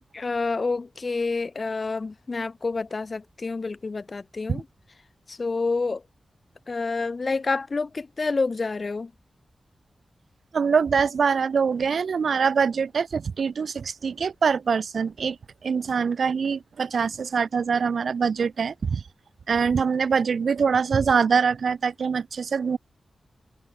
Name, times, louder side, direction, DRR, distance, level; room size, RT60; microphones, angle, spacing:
voice 1, 0.1-4.7 5.3-6.0 6.7-9.1, left 3 dB, 35° left, 0.3 m, -28 dB
voice 2, 10.5-15.4 15.6-19.0 19.5-22.8, right 6 dB, 70° right, 0.5 m, -24 dB
wide cardioid pair, 165°, 0 cm